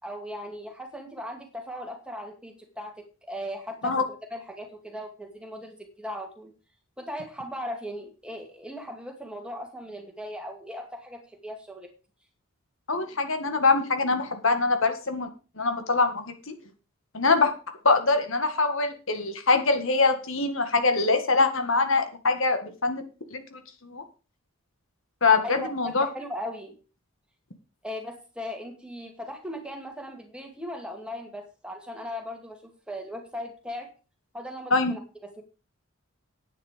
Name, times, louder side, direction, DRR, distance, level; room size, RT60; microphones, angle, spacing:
voice 1, 0.0-6.5 7.0-11.9 25.4-26.8 27.8-33.9 34.3-35.4, equal, 5° right, 3 dB, 2.3 m, -38 dB
voice 2, 12.9-15.3 15.6-16.6 17.1-17.5 17.8-23.0 23.3-24.0 25.2-26.1 34.7-34.9, left 3 dB, 60° left, 7 dB, 1.8 m, -24 dB
11.0 x 9.4 x 5.1 m, 0.33 s
head